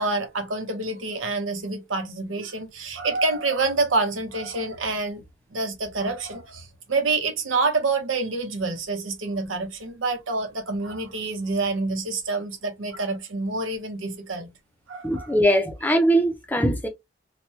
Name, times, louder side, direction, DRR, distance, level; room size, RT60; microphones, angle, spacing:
voice 1, 0.0-5.2 5.5-14.5 14.9-15.3, right 3 dB, 85° right, 0.9 m, -27 dB
voice 2, 15.0-16.9, equal, 10° left, 0.5 m, -21 dB
2.9 x 2.2 x 3.0 m
head